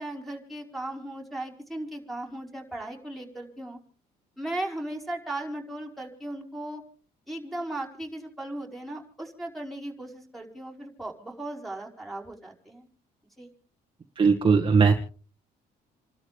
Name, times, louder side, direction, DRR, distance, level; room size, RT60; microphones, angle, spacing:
voice 1, 0.0-3.8 4.4-6.8 7.3-12.9 13.4-13.5, right 1 dB, ahead, 1 dB, 5.1 m, -37 dB
voice 2, 14.2-14.9, right 5 dB, 30° right, 1 dB, 1.9 m, -19 dB
29.5 x 12.5 x 3.5 m, 0.41 s
cardioid pair, 110°, 17 cm